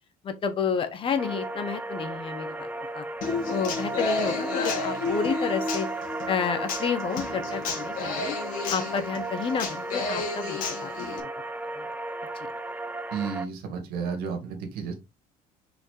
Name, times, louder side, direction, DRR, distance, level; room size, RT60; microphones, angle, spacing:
voice 1, 0.2-2.7 2.9-3.0 3.5-5.9 6.3-8.3 8.7-10.9 11.8-11.9 12.3-12.5, left 6 dB, 35° left, 1.1 m, -30 dB
sound 1, 1.2-13.5, right 2 dB, 10° right, 0.5 m, -35 dB
Human voice / Acoustic guitar, 3.2-11.2, left 3 dB, 60° left, 1.9 m, -31 dB
voice 2, 13.1-14.9, right 6 dB, 80° right, 2.2 m, -32 dB
6.3 x 5.0 x 3.4 m
cardioid pair, 160°, 16 cm